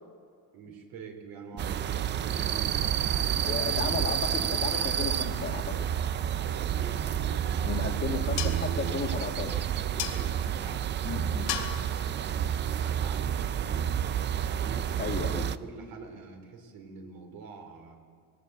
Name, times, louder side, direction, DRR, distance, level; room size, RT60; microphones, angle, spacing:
voice 1, 0.5-3.9 6.4-8.1 9.7-14.0 14.6-18.0, right 5 dB, 60° right, 4 dB, 4.2 m, -45 dB
sound 1, 1.6-15.6, right 9 dB, 30° right, 0.4 m, -29 dB
voice 2, 3.5-5.9 7.6-9.6 11.0-11.5 15.0-15.5, left 5 dB, 25° left, 2 dB, 1.7 m, -34 dB
sound 2, 7.2-13.6, left 11 dB, 90° left, 2.9 m, -41 dB
21.0 x 19.0 x 8.3 m, 2.3 s
cardioid pair, 160°, 39 cm